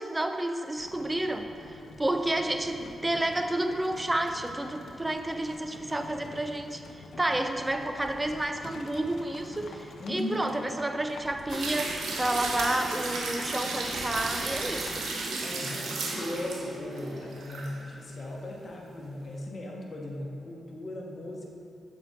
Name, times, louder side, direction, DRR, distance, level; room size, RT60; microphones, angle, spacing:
voice 1, 0.0-6.8 7.2-15.1, right 1 dB, 20° right, 7 dB, 0.5 m, -30 dB
Livestock farm animals working animals, 0.8-15.2, left 3 dB, 75° left, 0.6 m, -46 dB
voice 2, 10.0-10.5 15.4-21.5, left 1 dB, 50° left, -1 dB, 1.1 m, -37 dB
sound 1, 11.5-17.7 18.1-18.2, right 3 dB, 85° right, 0.8 m, -34 dB
6.7 x 4.7 x 4.1 m, 2.5 s
cardioid pair, 60°, 0 cm